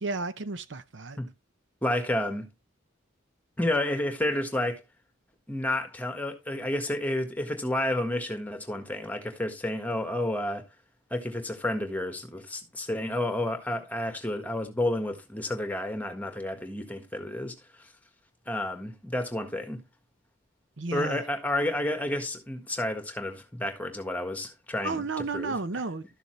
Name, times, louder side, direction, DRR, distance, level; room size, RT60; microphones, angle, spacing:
voice 1, 0.0-1.2 20.8-21.2 24.8-26.0, right 3 dB, 60° right, 0.8 m, -32 dB
voice 2, 1.8-2.5 3.6-4.8 5.5-10.7 11.1-17.9 18.5-19.8 20.9-25.0 25.3-25.5, left 1 dB, 10° left, 1.6 m, -30 dB
13.0 x 6.8 x 3.2 m
head